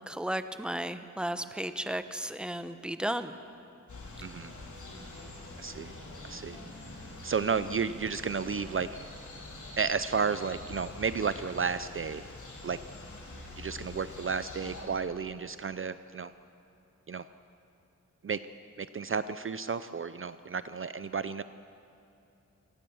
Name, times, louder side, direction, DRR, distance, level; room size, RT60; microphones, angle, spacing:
voice 1, 0.1-3.3, right 1 dB, 5° right, 10 dB, 0.9 m, -34 dB
sound 1, 3.9-14.8, left 2 dB, 80° left, 4.6 m, -45 dB
voice 2, 4.2-4.5 5.6-5.9 6.2-6.6 7.2-9.1 9.8-12.2 12.6-12.8 13.6-16.3 17.1-17.2 18.2-18.4 18.8-21.4, right 5 dB, 45° right, 13 dB, 0.5 m, -32 dB
25.5 x 18.5 x 7.1 m, 2.9 s
wide cardioid pair, 125°, 30 cm